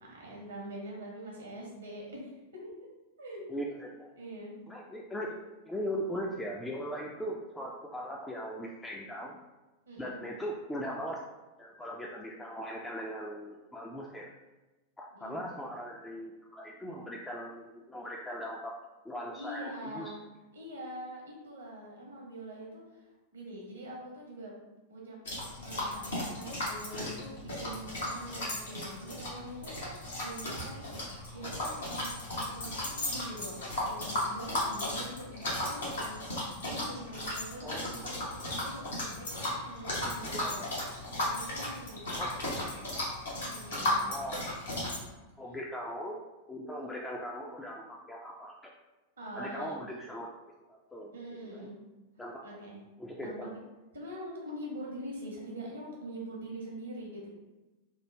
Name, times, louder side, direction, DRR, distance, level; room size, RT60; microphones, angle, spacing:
voice 1, 0.1-2.9 3.2-3.6 4.2-4.6 9.9-10.2 15.1-15.4 19.3-20.2 20.5-24.5 24.9-25.2 25.6-30.9 31.3-36.2 36.6-38.0 38.6-38.9 39.6-40.6 41.3-42.8 43.3-44.1 49.2-49.7 51.1-51.8 52.4-52.8 53.2-53.6 53.9-57.3, right 1 dB, 75° right, -2 dB, 0.7 m, -44 dB
voice 2, 3.5-4.1 4.7-9.4 10.0-14.3 15.0-18.7 19.0-20.1 37.6-37.9 40.4-40.5 42.2-42.3 42.5-43.1 44.1-44.4 45.4-46.2 46.5-48.7 49.3-50.3 50.7-51.1 51.4-51.7 52.2-52.4 53.0-53.5, equal, 10° left, -2 dB, 0.3 m, -39 dB
sound 1, 25.3-45.0, left 1 dB, 70° left, 0.9 m, -35 dB
3.1 x 2.1 x 3.2 m, 1.1 s
figure-of-eight pair, 90°, 0 cm